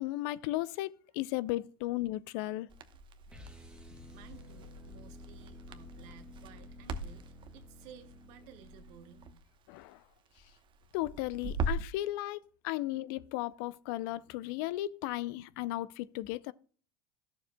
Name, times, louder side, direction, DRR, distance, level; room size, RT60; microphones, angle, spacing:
voice 1, 0.0-2.7 9.7-10.0 10.9-16.5, left 16 dB, 70° left, 0.5 m, -35 dB
Crackle, 2.7-12.0, right 2 dB, 40° right, 1.0 m, -42 dB
sound 1, 3.3-9.4, left 2 dB, 5° right, 2.0 m, -52 dB
voice 2, 4.1-9.2, right 10 dB, 65° right, 1.1 m, -56 dB
13.0 x 7.2 x 2.2 m
hypercardioid pair, 85°, 12 cm